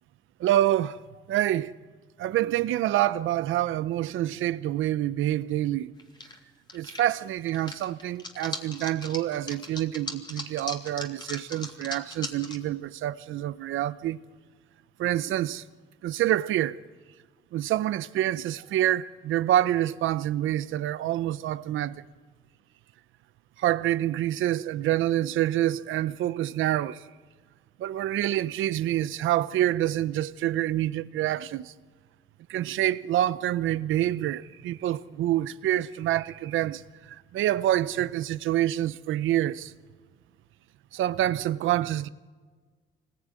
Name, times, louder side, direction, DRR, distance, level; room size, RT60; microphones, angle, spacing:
voice 1, 0.4-1.0 1.3-1.7 2.2-5.9 6.7-14.2 15.0-15.6 16.0-16.8 17.5-22.0 23.6-27.0 27.8-31.7 32.5-36.8 37.3-39.7 40.9-42.1, right 13 dB, 80° right, 0.8 m, -27 dB
sound 1, 6.0-6.4 6.7-12.6, left 2 dB, 20° left, 3.0 m, -38 dB
25.0 x 20.5 x 9.8 m
cardioid pair, 90°, 20 cm